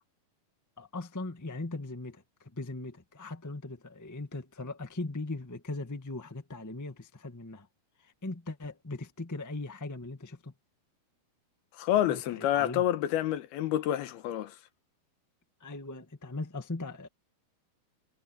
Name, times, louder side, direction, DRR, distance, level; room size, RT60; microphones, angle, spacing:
voice 1, 0.8-7.7 8.0-10.5 12.0-12.8 15.6-17.1, left 2 dB, 25° left, 0.4 m, -39 dB
voice 2, 11.8-14.5, left 12 dB, 85° left, 3.1 m, -28 dB
omnidirectional pair, 4.4 m